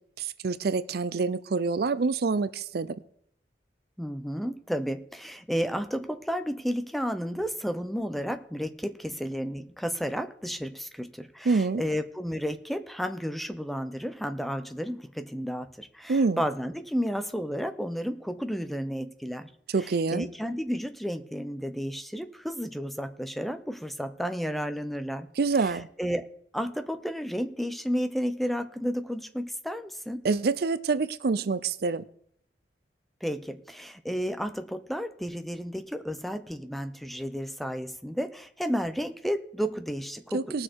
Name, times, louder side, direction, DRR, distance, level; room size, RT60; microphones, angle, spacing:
voice 1, 0.2-3.0 11.4-11.8 16.1-16.4 19.7-20.3 25.4-25.9 30.2-32.1 40.3-40.6, right 4 dB, 55° right, 15 dB, 0.5 m, -26 dB
voice 2, 4.0-19.5 19.8-25.3 25.6-26.3 26.5-30.3 33.2-40.6, equal, ahead, 9 dB, 0.6 m, -32 dB
19.5 x 6.5 x 4.6 m, 0.68 s
head